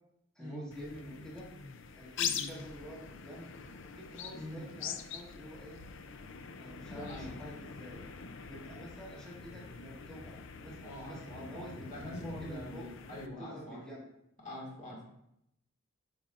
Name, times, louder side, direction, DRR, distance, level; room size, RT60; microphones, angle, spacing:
voice 1, 0.3-1.5 1.9-3.5 3.9-5.8 6.6-8.1 8.5-12.9 13.4-14.1, equal, 5° left, -7 dB, 1.6 m, -48 dB
sound 1, 0.7-13.3, left 7 dB, 60° left, 0.5 m, -43 dB
voice 2, 6.9-7.4 10.8-13.8 14.4-15.0, equal, 35° left, -3 dB, 1.8 m, -45 dB
8.7 x 5.3 x 2.5 m, 0.79 s
head